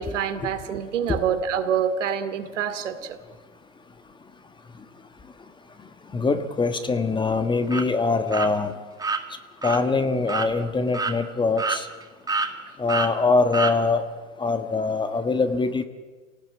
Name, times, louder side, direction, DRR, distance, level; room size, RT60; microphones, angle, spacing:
voice 1, 0.0-3.2, right 8 dB, 75° right, 9 dB, 2.6 m, -26 dB
voice 2, 6.1-8.8 9.6-11.9 12.8-14.0 14.4-15.8, left 3 dB, 10° left, 10 dB, 1.4 m, -23 dB
sound 1, 7.7-7.8 8.3-8.5 9.0-9.2 9.6-9.8 10.3-10.5 10.9-11.2 11.6-12.0 12.3-12.5 12.9-13.1 13.5-13.8, right 4 dB, 10° right, 2.0 m, -26 dB
28.0 x 18.5 x 8.8 m, 1.4 s
hypercardioid pair, 120°, 37 cm